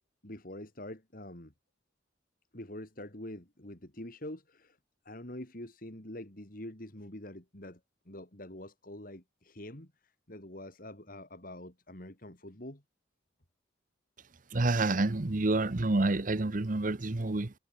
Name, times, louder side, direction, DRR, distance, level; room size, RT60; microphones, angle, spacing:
voice 1, 0.2-1.5 2.5-4.8 5.0-7.8 8.0-12.8, left 1 dB, 50° left, 3.4 m, -45 dB
voice 2, 14.5-17.5, right 2 dB, 45° right, 0.9 m, -28 dB
head